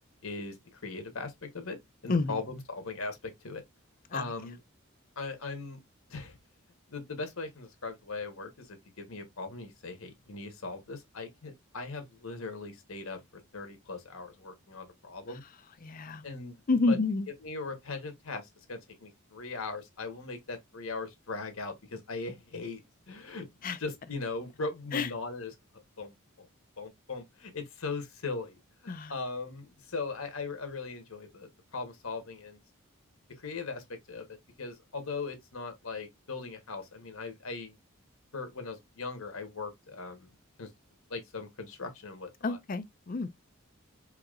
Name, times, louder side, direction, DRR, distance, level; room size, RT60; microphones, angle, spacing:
voice 1, 0.2-1.8 2.0-3.6 4.1-4.6 5.2-5.8 6.1-6.4 6.9-13.2 13.5-15.4 16.2-16.6 16.9-17.0 17.4-23.4 23.8-25.5 26.0-26.5 26.8-28.5 28.8-32.6 33.4-37.7 38.3-40.3 40.6-40.7 41.1-42.6, left 3 dB, 75° left, 1.2 m, -39 dB
voice 2, 2.1-2.4 4.1-4.3 15.8-16.3 16.7-17.3 23.6-23.8 24.9-25.1 28.9-29.2 42.4-43.3, left 3 dB, 40° left, 0.4 m, -29 dB
4.8 x 2.8 x 2.4 m
head